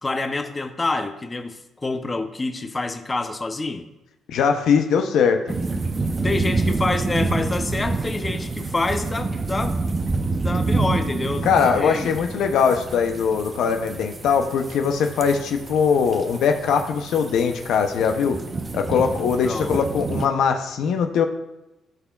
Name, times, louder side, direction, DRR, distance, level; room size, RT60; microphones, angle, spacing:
voice 1, 0.0-3.9 6.2-9.8 10.4-12.1 19.4-19.7, left 2 dB, 25° left, 7 dB, 0.7 m, -27 dB
voice 2, 4.3-5.5 11.4-18.4 18.7-21.3, left 6 dB, 80° left, 5 dB, 0.7 m, -21 dB
sound 1, 5.5-20.3, right 3 dB, 30° right, 0.7 m, -28 dB
15.5 x 5.8 x 2.4 m, 0.97 s
cardioid pair, 90°, 0 cm